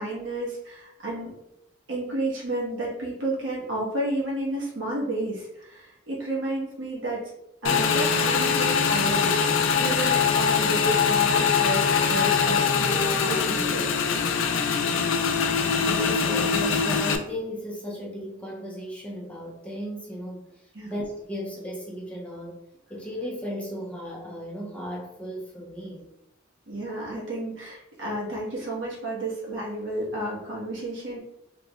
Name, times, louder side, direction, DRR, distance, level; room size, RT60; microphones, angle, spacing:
voice 1, 0.0-1.3 1.9-7.2 7.6-9.3 9.8-13.0 13.2-13.8 20.7-20.9 26.7-31.2, right 1 dB, 70° right, -4 dB, 1.2 m, -31 dB
Motorcycle / Engine, 7.6-17.2, left 6 dB, 85° left, 0.4 m, -23 dB
voice 2, 15.8-22.6 22.9-26.1, equal, 5° left, -3 dB, 0.6 m, -35 dB
3.6 x 3.1 x 2.3 m, 0.85 s
head